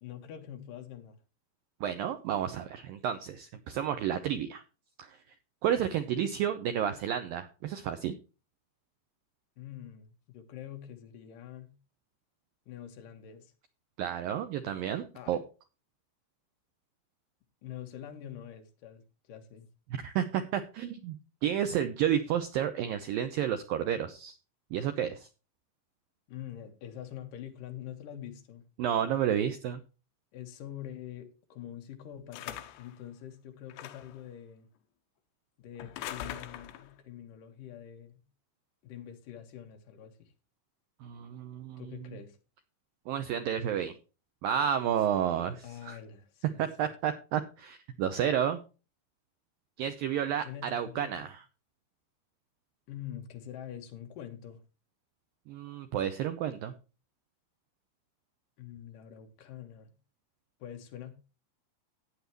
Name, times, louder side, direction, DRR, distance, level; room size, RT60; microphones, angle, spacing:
voice 1, 0.0-1.2 9.6-11.7 12.7-13.5 15.1-15.4 17.6-19.0 19.3-19.7 26.3-28.6 30.3-34.7 35.6-38.2 38.8-40.3 41.8-42.4 45.6-46.7 50.4-51.3 52.9-54.6 58.6-59.9 60.6-61.1, left 10 dB, 60° left, 2.7 m, -45 dB
voice 2, 1.8-4.6 5.0-5.2 5.6-8.1 14.0-15.4 19.9-21.2 21.4-24.4 24.7-25.3 28.8-29.8 41.0-41.8 43.1-44.0 44.4-46.0 46.6-48.6 49.8-51.5 55.5-56.7, right 9 dB, 90° right, 2.0 m, -31 dB
sound 1, 32.3-32.9 33.7-34.2 35.8-36.9, left 11 dB, 75° left, 3.0 m, -42 dB
15.0 x 9.4 x 3.1 m
omnidirectional pair, 5.3 m